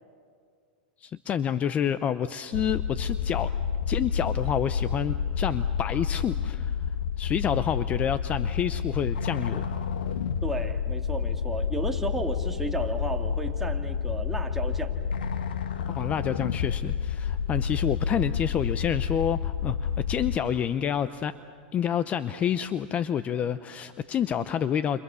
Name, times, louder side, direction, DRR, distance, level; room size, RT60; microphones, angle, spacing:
voice 1, 1.0-3.5 3.9-6.8 7.2-9.6 15.9-21.4 21.7-25.0, left 8 dB, 30° left, 13 dB, 0.7 m, -28 dB
sound 1, 2.5-20.4, left 7 dB, 90° left, 1.6 m, -29 dB
voice 2, 10.4-14.9, right 2 dB, 5° right, 2 dB, 2.3 m, -33 dB
30.0 x 28.5 x 7.0 m, 2.1 s
hypercardioid pair, 120°, 5 cm